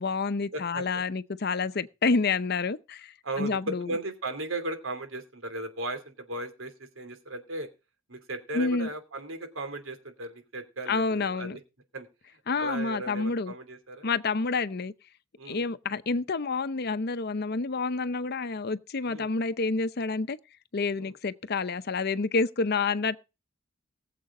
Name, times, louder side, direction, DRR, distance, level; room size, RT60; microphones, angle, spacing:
voice 1, 0.0-3.9 8.5-8.9 10.9-11.6 12.5-13.5 14.0-14.9 15.5-20.4 20.7-23.2, left 4 dB, 55° left, 0.7 m, -28 dB
voice 2, 0.5-1.0 3.2-7.7 8.1-11.6 11.9-12.1 12.6-14.1 15.4-15.6 19.1-19.3 21.0-21.1, right 2 dB, 90° right, 2.9 m, -36 dB
20.5 x 7.6 x 3.8 m
head